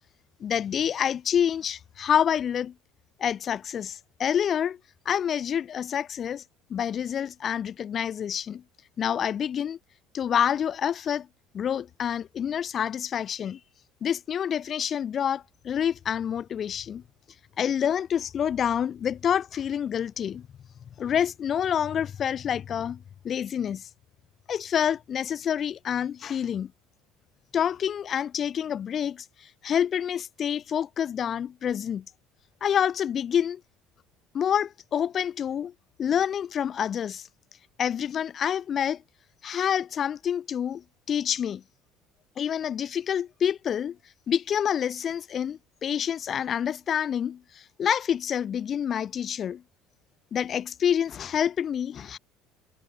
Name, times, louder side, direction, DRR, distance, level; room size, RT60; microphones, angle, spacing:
voice 1, 0.4-2.7 3.2-4.8 5.1-6.4 6.7-8.6 9.0-9.8 10.1-11.3 11.5-13.6 14.0-17.0 17.6-20.5 21.0-23.9 24.5-26.7 27.5-32.0 32.6-33.6 34.3-35.7 36.0-37.3 37.8-39.0 39.4-41.6 42.4-44.0 44.3-49.6 50.3-52.2, left 8 dB, 45° left, 2.0 m, -27 dB
supercardioid pair, 95°, 0 cm